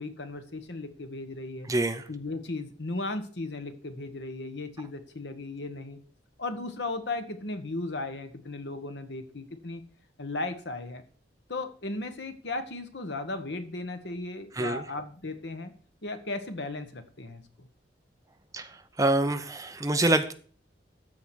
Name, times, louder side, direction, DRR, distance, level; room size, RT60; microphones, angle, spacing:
voice 1, 0.0-1.7 2.1-6.0 6.4-9.8 10.2-11.0 11.5-15.7 16.0-17.7, left 2 dB, 70° left, 8 dB, 1.4 m, -36 dB
voice 2, 1.7-2.0 14.6-14.8 18.5-18.7 19.0-20.3, right 2 dB, 20° right, 9 dB, 0.7 m, -25 dB
13.5 x 4.9 x 6.2 m, 0.43 s
head